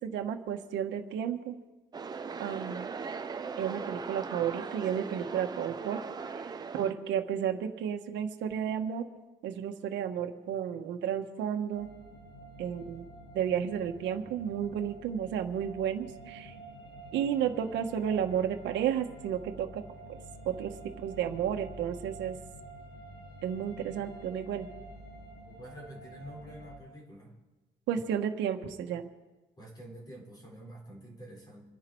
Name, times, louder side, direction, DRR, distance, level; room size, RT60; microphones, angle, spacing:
voice 1, 0.0-1.5 2.4-2.9 3.6-6.0 6.7-9.0 9.4-11.9 12.6-13.1 13.3-16.5 17.1-19.8 20.4-22.4 23.4-24.7 27.9-29.1, right 9 dB, 80° right, 4 dB, 1.4 m, -32 dB
sound 1, 1.9-6.9, right 5 dB, 20° right, 0.8 m, -39 dB
sound 2, 11.7-26.7, right 2 dB, 75° left, 4.4 m, -48 dB
voice 2, 25.5-27.3 29.6-31.6, right 1 dB, 20° left, -2 dB, 5.5 m, -47 dB
26.5 x 10.5 x 4.6 m, 1.1 s
cardioid pair, 160°, 18 cm